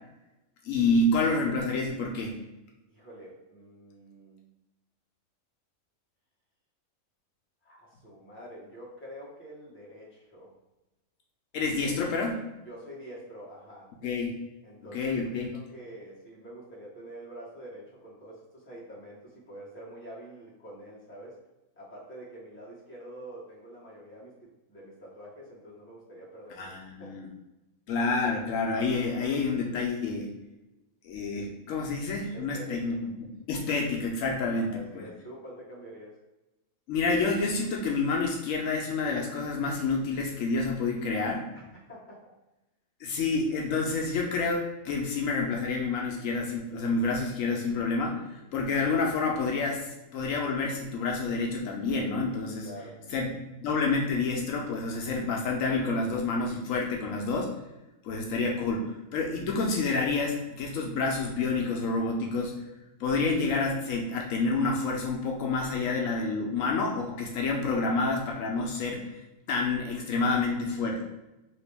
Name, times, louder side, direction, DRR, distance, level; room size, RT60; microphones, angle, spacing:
voice 1, 0.6-2.4 11.5-12.4 14.0-14.4 14.9-15.5 26.6-27.3 27.9-30.3 31.0-34.7 34.9-35.0 36.9-41.4 43.0-52.7 53.1-57.5 58.0-62.5 63.0-69.1 69.5-71.0, left 3 dB, 75° left, 0 dB, 0.9 m, -28 dB
voice 2, 2.9-4.4 7.6-10.5 12.6-13.9 14.6-15.0 15.3-21.4 21.8-24.3 24.7-26.7 27.0-27.2 32.3-33.0 34.7-36.2 41.5-42.2 52.6-53.0, right 1 dB, 10° left, -6 dB, 0.9 m, -46 dB
3.0 x 2.8 x 3.3 m, 1.0 s
omnidirectional pair, 1.4 m